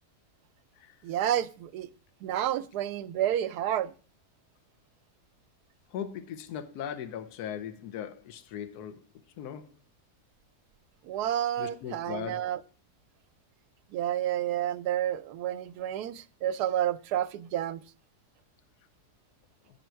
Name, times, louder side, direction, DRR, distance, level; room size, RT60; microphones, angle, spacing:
voice 1, 1.0-1.9 2.2-3.9 11.0-12.6 13.9-17.8, right 11 dB, 90° right, 1.2 m, -30 dB
voice 2, 5.9-9.0 9.4-9.7 11.6-12.4, left 9 dB, 80° left, 1.3 m, -38 dB
10.5 x 6.6 x 4.4 m
omnidirectional pair, 1.7 m